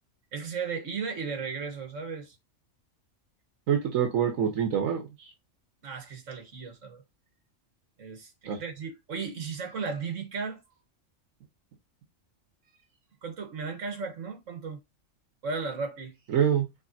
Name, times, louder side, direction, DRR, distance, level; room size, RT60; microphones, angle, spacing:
voice 1, 0.3-2.3 5.8-7.0 8.0-10.6 13.2-14.8 15.4-16.1, right 5 dB, 70° right, 1.7 m, -35 dB
voice 2, 3.7-5.3 8.5-8.6 16.3-16.7, right 8 dB, 90° right, 1.3 m, -26 dB
5.1 x 3.7 x 2.7 m
omnidirectional pair, 1.3 m